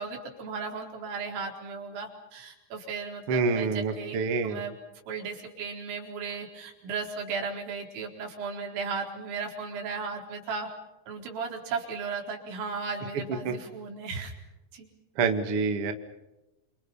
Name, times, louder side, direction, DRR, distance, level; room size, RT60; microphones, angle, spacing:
voice 1, 0.0-4.2 4.4-4.7 5.1-10.7 11.1-14.3 14.7-14.9, right 5 dB, 85° right, 1 dB, 7.0 m, -35 dB
voice 2, 3.3-4.6 13.4-13.5 15.2-15.9, right 4 dB, 50° right, 6 dB, 1.8 m, -27 dB
29.0 x 27.0 x 5.7 m, 0.96 s
omnidirectional pair, 5.7 m